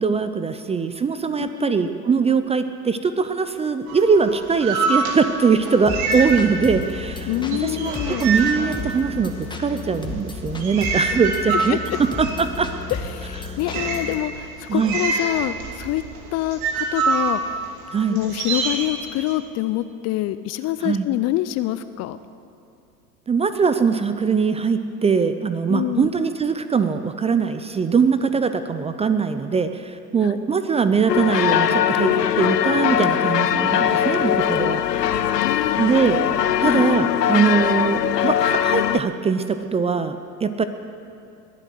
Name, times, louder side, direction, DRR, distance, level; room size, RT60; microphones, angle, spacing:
voice 1, 0.0-7.3 7.6-12.7 13.4-13.6 14.7-15.0 17.9-18.2 20.8-21.1 23.3-32.1 32.4-34.8 35.7-36.2 36.6-40.6, right 5 dB, 15° right, 10 dB, 0.5 m, -21 dB
voice 2, 1.4-1.7 7.3-8.3 11.5-12.0 12.9-16.0 16.3-17.4 18.1-22.2 25.7-26.1 30.2-30.3 35.4-35.8 36.6-36.8, left 15 dB, 35° left, 13 dB, 0.5 m, -26 dB
sound 1, 3.9-7.0 7.2-9.5 10.1-19.3, right 4 dB, 60° right, 2.7 m, -26 dB
sound 2, 5.9-14.2, left 4 dB, 10° left, 1.8 m, -33 dB
sound 3, 31.1-39.0, left 10 dB, 90° left, 0.6 m, -21 dB
21.5 x 8.0 x 7.8 m, 2.7 s
hypercardioid pair, 85°, 47 cm